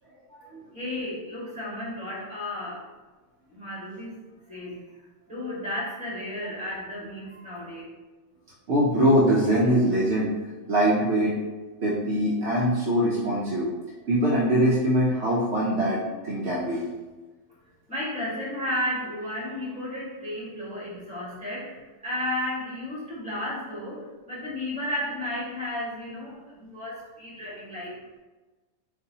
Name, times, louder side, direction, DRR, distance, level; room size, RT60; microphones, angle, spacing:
voice 1, 0.4-2.9 3.5-4.2 4.5-4.8 5.3-7.8 17.9-28.0, left 1 dB, 5° right, -8 dB, 1.3 m, -33 dB
voice 2, 8.7-10.3 10.7-11.3 11.8-13.7 14.1-16.0 16.2-16.8, equal, 65° right, -5 dB, 0.8 m, -22 dB
3.9 x 2.6 x 2.7 m, 1.2 s
omnidirectional pair, 1.3 m